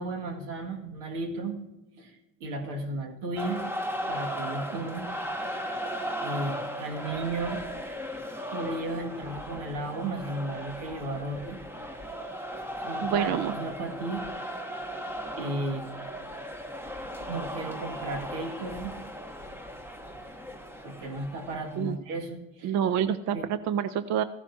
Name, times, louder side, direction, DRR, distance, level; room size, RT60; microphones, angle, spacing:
voice 1, 0.0-1.6 2.0-2.2 2.4-3.6 4.1-5.1 5.4-5.6 6.2-7.6 8.5-11.6 12.8-14.2 15.4-15.8 17.2-18.9 20.8-22.8 23.3-23.5, right 2 dB, 85° right, 4 dB, 2.0 m, -34 dB
sound 1, 3.4-21.9, equal, 5° right, 1.0 m, -37 dB
voice 2, 13.0-13.5 21.8-22.0 22.6-24.2, right 9 dB, 50° right, 14 dB, 0.5 m, -27 dB
15.5 x 11.5 x 2.7 m, 1.0 s
supercardioid pair, 110°, 37 cm